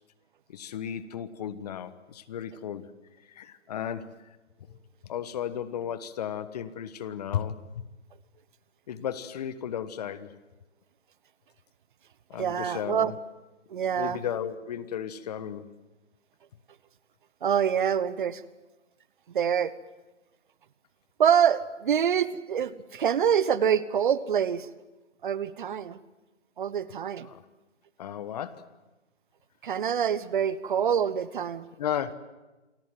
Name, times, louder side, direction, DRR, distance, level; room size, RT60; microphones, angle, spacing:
voice 1, 0.5-2.9 3.3-4.1 5.1-7.6 8.9-10.3 12.3-13.1 13.9-15.7 27.2-27.4 28.0-28.6 31.8-32.1, left 9 dB, 35° left, 14 dB, 1.3 m, -34 dB
voice 2, 12.4-13.1 13.7-14.2 17.4-18.4 19.3-19.7 21.2-24.7 25.2-26.0 26.6-27.3 29.6-31.7, right 8 dB, 45° right, 17 dB, 1.1 m, -25 dB
28.0 x 22.5 x 7.6 m, 1.1 s
hypercardioid pair, 150°, 36 cm